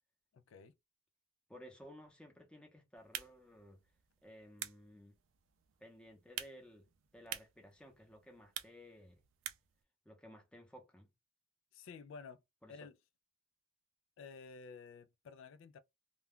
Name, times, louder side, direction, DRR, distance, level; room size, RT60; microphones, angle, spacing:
voice 1, 0.3-0.7 11.7-12.4 12.7-13.0 14.2-15.8, left 5 dB, 70° left, 0.3 m, -52 dB
voice 2, 1.5-3.8 4.2-5.1 5.8-6.9 7.1-9.2 10.0-11.1 12.6-12.9, equal, 5° left, 0.7 m, -56 dB
sound 1, 3.0-9.8, right 11 dB, 75° right, 0.4 m, -49 dB
2.2 x 2.2 x 3.5 m
head